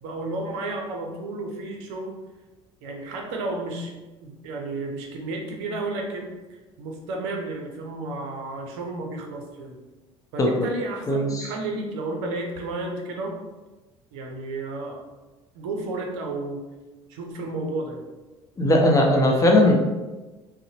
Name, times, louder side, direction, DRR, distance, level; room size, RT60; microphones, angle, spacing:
voice 1, 0.0-2.2 2.8-3.9 4.2-6.3 6.8-9.8 10.3-13.4 14.1-15.0 15.5-16.7 17.1-18.1, right 2 dB, 75° right, 2 dB, 0.5 m, -32 dB
voice 2, 11.1-11.5 18.6-19.9, left 1 dB, 25° left, 0 dB, 0.6 m, -18 dB
2.6 x 2.0 x 2.7 m, 1.1 s
hypercardioid pair, 65°, 15 cm